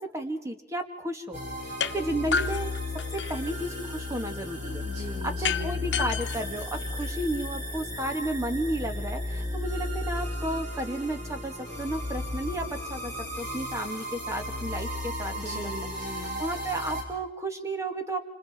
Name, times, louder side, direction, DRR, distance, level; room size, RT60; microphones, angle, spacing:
voice 1, 0.1-1.4 1.6-2.8 3.1-4.8 5.2-15.7 16.4-18.2, right 1 dB, 15° right, 5 dB, 2.0 m, -33 dB
sound 1, 1.3-17.0, left 1 dB, 40° right, 5.4 m, -34 dB
sound 2, 1.8-1.9 2.3-3.5 5.4-7.4, left 6 dB, 85° left, 1.0 m, -31 dB
voice 2, 4.8-5.8 15.3-16.4, left 2 dB, 70° right, -1 dB, 6.8 m, -40 dB
28.0 x 26.5 x 4.4 m, 0.86 s
head